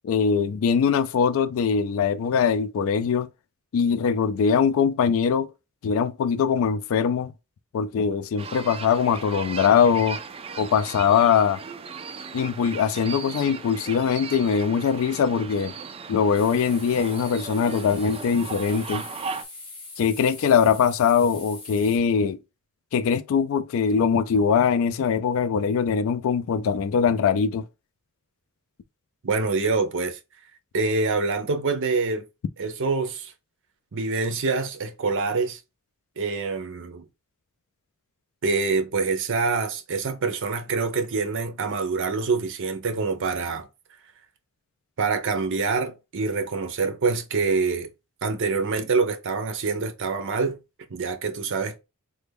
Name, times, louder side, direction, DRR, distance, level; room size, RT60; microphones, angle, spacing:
voice 1, 0.0-3.3 3.7-5.5 5.8-7.3 7.7-10.2 10.6-11.6 12.3-15.7 16.1-19.0 20.0-22.4 22.9-27.6, left 6 dB, 65° left, 0.3 m, -22 dB
sound 1, 8.4-19.4, right 5 dB, 25° right, 0.3 m, -37 dB
sound 2, 16.3-22.0, left 3 dB, 25° left, 0.9 m, -43 dB
voice 2, 29.2-30.2 30.7-32.2 32.6-33.3 33.9-35.6 36.2-37.1 38.4-43.7 45.0-47.9 48.2-50.6 50.9-51.8, right 4 dB, 60° right, 0.6 m, -25 dB
3.3 x 2.2 x 3.4 m
head